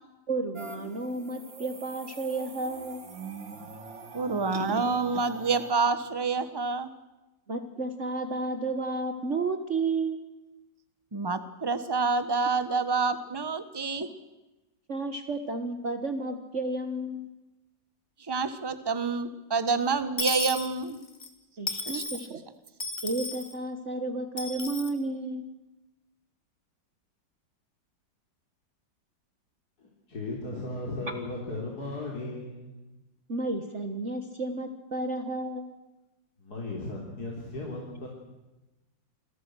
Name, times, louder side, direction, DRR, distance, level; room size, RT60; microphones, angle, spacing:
voice 1, 0.3-3.0 7.5-10.2 14.9-17.3 21.6-22.4 23.0-25.5 33.3-35.7, right 2 dB, 40° right, 7 dB, 1.7 m, -32 dB
sound 1, 0.6-5.7, right 4 dB, 80° right, 3.3 m, -43 dB
voice 2, 4.1-6.9 11.1-14.1 18.3-21.0 21.9-22.0, right 4 dB, 15° right, 11 dB, 1.2 m, -28 dB
Dishes pots and pans / Coin (dropping), 20.2-21.3 21.7-22.3 22.8-23.5 24.4-24.9, left 2 dB, 25° left, 2.4 m, -34 dB
voice 3, 29.8-32.7 36.4-38.1, left 2 dB, 55° left, -2 dB, 4.4 m, -36 dB
28.5 x 22.0 x 6.4 m, 1.0 s
omnidirectional pair, 2.0 m